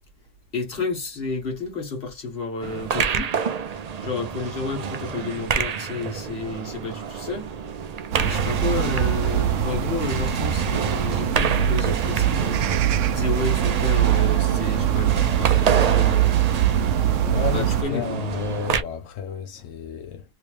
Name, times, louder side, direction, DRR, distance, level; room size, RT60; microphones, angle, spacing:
voice 1, 0.5-3.3 4.0-7.5 8.1-16.4 17.5-18.2, left 3 dB, 50° left, 1.6 m, -31 dB
sound 1, 2.6-18.8, right 6 dB, 65° right, 0.4 m, -28 dB
sound 2, 8.1-17.8, right 10 dB, 80° right, 0.9 m, -22 dB
voice 2, 17.3-20.2, left 6 dB, 85° left, 1.0 m, -31 dB
3.1 x 3.1 x 3.2 m
omnidirectional pair, 1.3 m